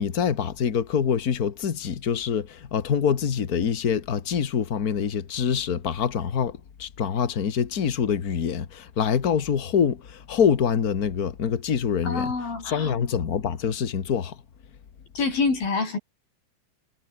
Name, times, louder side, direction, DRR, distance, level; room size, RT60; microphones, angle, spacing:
voice 1, 0.0-12.3 12.6-14.4, left 7 dB, 60° left, 0.9 m, -25 dB
voice 2, 12.0-12.9 15.2-16.0, left 4 dB, 75° left, 8.8 m, -26 dB
omnidirectional pair, 4.1 m